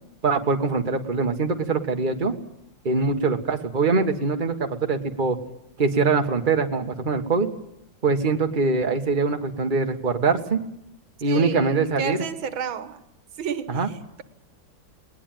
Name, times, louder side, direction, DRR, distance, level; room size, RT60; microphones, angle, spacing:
voice 1, 0.2-2.3 2.8-5.4 5.8-7.5 8.0-10.6 11.2-12.2 13.7-13.9, right 4 dB, 25° right, 5 dB, 1.7 m, -23 dB
voice 2, 11.3-13.0 13.4-14.2, right 7 dB, 85° right, 12 dB, 2.0 m, -31 dB
20.0 x 19.5 x 9.2 m, 0.82 s
omnidirectional pair, 2.1 m